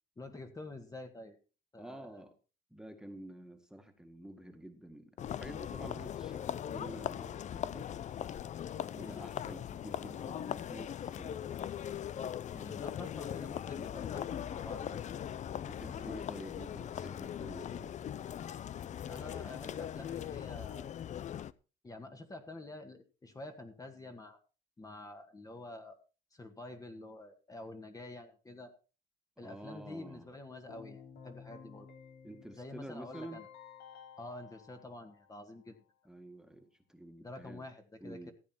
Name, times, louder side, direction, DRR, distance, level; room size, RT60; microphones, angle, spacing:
voice 1, 0.2-1.4 1.7-2.3 8.9-9.3 12.5-15.3 15.9-16.5 19.1-20.9 21.8-24.4 24.8-26.0 26.3-28.7 29.4-31.9 32.6-33.5 34.2-35.8 37.2-38.3, left 2 dB, 20° left, 6 dB, 1.8 m, -48 dB
voice 2, 1.8-2.3 2.7-8.1 8.8-11.5 15.7-17.9 29.4-30.3 32.2-33.4 36.1-37.7 38.0-38.3, right 1 dB, 5° right, 5 dB, 1.9 m, -49 dB
sound 1, 5.2-21.5, left 10 dB, 45° left, 0.6 m, -40 dB
Keyboard (musical), 30.7-35.7, left 7 dB, 70° left, 3.7 m, -54 dB
15.0 x 8.7 x 4.5 m, 0.34 s
cardioid pair, 110°, 17 cm